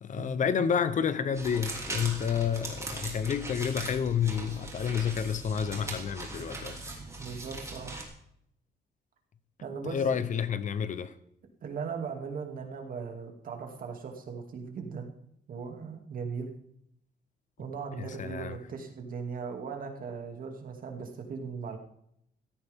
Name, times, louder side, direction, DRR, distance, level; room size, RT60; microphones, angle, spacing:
voice 1, 0.0-6.8 9.8-11.1 18.0-18.6, left 7 dB, 45° left, 0.8 m, -30 dB
sound 1, 1.3-8.0, right 2 dB, 15° right, 2.9 m, -40 dB
voice 2, 7.2-7.9 9.6-10.0 11.6-15.1 15.5-16.5 17.6-21.8, right 5 dB, 55° right, 2.5 m, -38 dB
16.5 x 14.0 x 3.6 m
cardioid pair, 155°, 18 cm